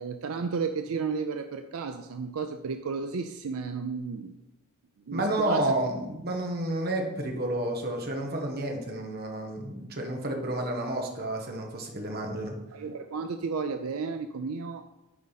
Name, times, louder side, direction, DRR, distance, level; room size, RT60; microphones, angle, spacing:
voice 1, 0.0-4.4 5.1-5.7 12.7-14.8, right 5 dB, 75° right, 7 dB, 0.4 m, -33 dB
voice 2, 5.1-12.6, right 1 dB, 45° right, 2 dB, 1.2 m, -30 dB
9.4 x 4.8 x 4.1 m, 0.96 s
head